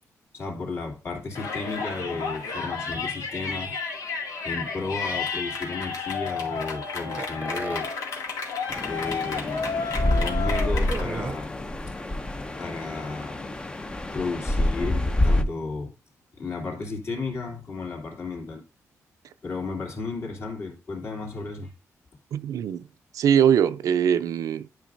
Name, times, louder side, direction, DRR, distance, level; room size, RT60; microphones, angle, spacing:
voice 1, 0.3-3.8 4.4-7.9 8.8-11.5 12.6-13.5 14.1-15.9 16.4-18.6 19.4-21.7, left 3 dB, 50° left, 2.5 m, -33 dB
Yell, 1.4-11.0, left 5 dB, 90° left, 2.2 m, -31 dB
sound 1, 7.2-7.8 8.7-8.8 9.1-9.2 10.7-11.4, right 4 dB, 30° right, 0.6 m, -34 dB
sound 2, 8.7-15.4, left 1 dB, 15° left, 0.6 m, -27 dB
voice 2, 22.3-22.8 23.1-24.7, right 8 dB, 80° right, 0.5 m, -22 dB
10.5 x 5.1 x 2.6 m
wide cardioid pair, 135°, 6 cm